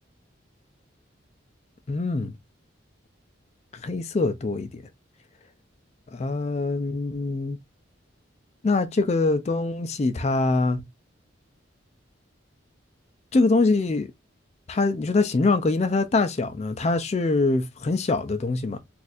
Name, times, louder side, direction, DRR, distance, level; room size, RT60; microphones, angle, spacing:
voice 1, 1.9-2.4 3.7-4.8 6.1-7.6 8.6-10.8 13.3-14.1 14.7-18.8, left 3 dB, 35° left, 0.3 m, -24 dB
4.2 x 2.4 x 2.4 m
head